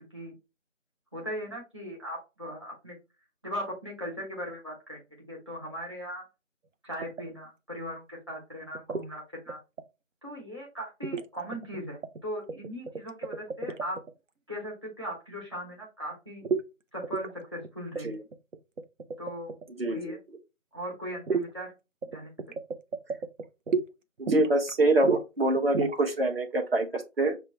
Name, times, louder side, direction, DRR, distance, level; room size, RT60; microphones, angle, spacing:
voice 1, 1.1-3.0 3.4-5.0 5.3-6.2 6.8-9.6 10.2-14.0 14.5-16.4 16.9-18.1 19.2-19.5 19.9-20.2 20.7-21.7 22.1-22.3, equal, 20° right, -2 dB, 1.2 m, -38 dB
sound 1, 7.0-7.2 8.7-9.1 9.5-9.8 11.0-11.3 11.5-12.2 12.5-14.1 16.4-16.6 17.0-17.3 17.6-17.7 18.0-19.7 21.3-21.5 22.0-23.9 24.3-24.7 25.0-25.2 25.6-25.9, right 5 dB, 70° right, 0.7 m, -31 dB
voice 2, 19.8-20.2 24.2-27.4, right 2 dB, 50° right, 2 dB, 1.1 m, -25 dB
6.7 x 2.2 x 3.0 m, 0.27 s
figure-of-eight pair, 170°, 39 cm